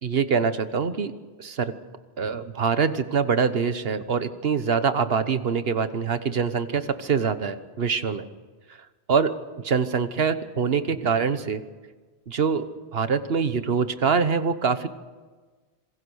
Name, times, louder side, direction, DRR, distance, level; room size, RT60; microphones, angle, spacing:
voice 1, 0.0-1.1 1.4-1.7 2.2-8.3 9.1-9.3 9.6-11.6 12.3-12.6 12.9-14.9, right 6 dB, 65° right, 11 dB, 1.4 m, -24 dB
26.5 x 22.0 x 6.4 m, 1.4 s
omnidirectional pair, 1.1 m